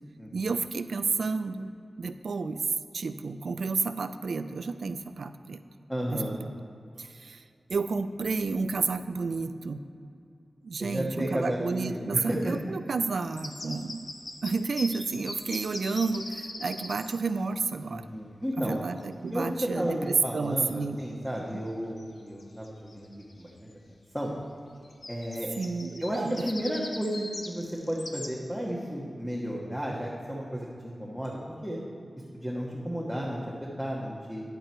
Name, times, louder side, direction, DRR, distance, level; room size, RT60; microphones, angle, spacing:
voice 1, 0.3-1.7 2.0-2.6 2.9-5.6 6.1-6.2 7.0-7.4 7.7-9.8 10.6-14.1 14.4-18.1 18.6-21.0 25.6-26.5, right 4 dB, 75° right, 10 dB, 0.4 m, -31 dB
voice 2, 5.9-6.4 10.8-12.5 17.9-18.8 19.3-23.1 23.4-23.5 24.1-24.3 25.1-25.5 26.0-31.8 32.3-33.4 33.8-34.4, equal, 5° left, -4 dB, 1.3 m, -33 dB
sound 1, 13.2-17.2 20.6-20.7 21.3-21.7 22.0-22.1 22.4-23.5 24.8-28.3, left 2 dB, 50° left, 1.0 m, -41 dB
10.5 x 9.0 x 4.5 m, 2.6 s
wide cardioid pair, 105°, 0 cm